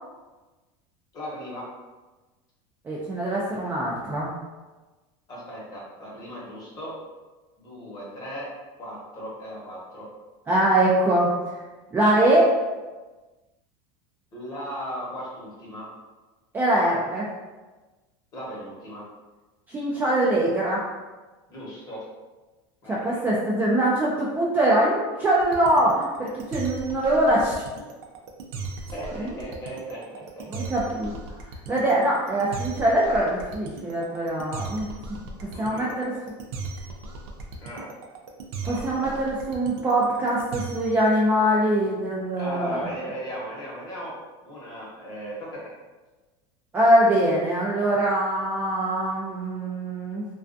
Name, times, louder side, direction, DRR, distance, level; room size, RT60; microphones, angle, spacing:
voice 1, 1.1-1.7 5.3-6.9 7.6-8.5 8.8-10.1 14.3-15.9 18.3-19.0 21.5-22.0 22.8-23.3 28.9-30.7 35.5-35.9 37.6-37.9 38.6-39.1 42.3-44.1 44.4-45.7, equal, 30° left, -5 dB, 0.9 m, -37 dB
voice 2, 2.8-4.3 10.5-11.3 11.9-12.6 16.5-17.3 19.7-20.8 22.9-27.6 29.1-29.3 30.5-31.1 31.7-34.9 35.4-36.1 38.7-42.9 46.7-50.3, right 1 dB, 15° right, -6 dB, 0.3 m, -23 dB
sound 1, 25.4-41.0, right 3 dB, 85° right, 0.4 m, -37 dB
2.3 x 2.3 x 2.5 m, 1.2 s
supercardioid pair, 145°, 13 cm